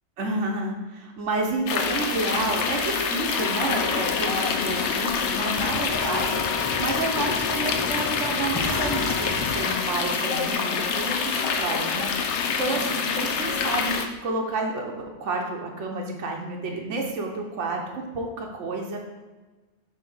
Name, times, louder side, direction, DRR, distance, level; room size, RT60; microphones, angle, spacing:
voice 1, 0.2-14.9 15.2-19.0, right 3 dB, 80° right, 0 dB, 1.2 m, -30 dB
sound 1, 1.7-14.1, left 6 dB, 75° left, 0.9 m, -26 dB
sound 2, 5.6-10.4, left 2 dB, 30° left, 0.4 m, -34 dB
6.8 x 2.9 x 5.4 m, 1.2 s
omnidirectional pair, 1.2 m